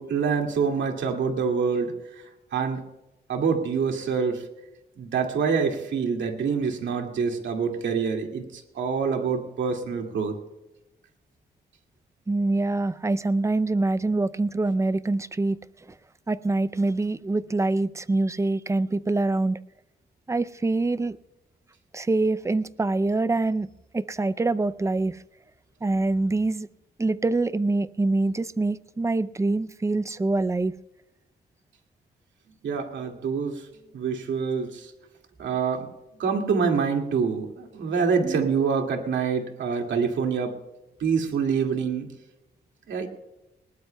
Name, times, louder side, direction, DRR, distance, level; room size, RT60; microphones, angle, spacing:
voice 1, 0.0-2.8 3.3-4.5 5.0-10.4 32.6-33.7 33.9-34.9 35.4-35.9 36.2-40.6 41.0-42.1 42.9-43.1, right 5 dB, 85° right, 3 dB, 2.3 m, -26 dB
voice 2, 12.3-15.6 16.3-19.6 20.3-21.2 21.9-23.7 23.9-25.2 25.8-26.7 27.0-30.7 38.2-38.5, right 2 dB, 15° right, 15 dB, 0.5 m, -25 dB
20.5 x 19.0 x 2.3 m, 0.96 s
wide cardioid pair, 120°, 19 cm